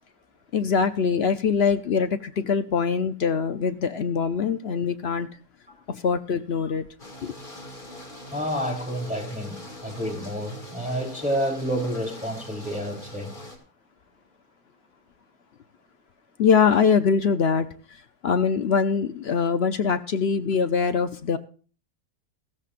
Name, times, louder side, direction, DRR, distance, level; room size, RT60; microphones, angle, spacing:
voice 1, 0.5-5.3 5.9-6.8 7.2-7.3 16.4-21.4, left 6 dB, 55° left, 0.7 m, -23 dB
sound 1, 7.0-13.6, left 1 dB, 30° left, 2.5 m, -42 dB
voice 2, 8.3-13.4, equal, 5° right, 3.3 m, -29 dB
15.5 x 14.0 x 2.5 m
omnidirectional pair, 1.6 m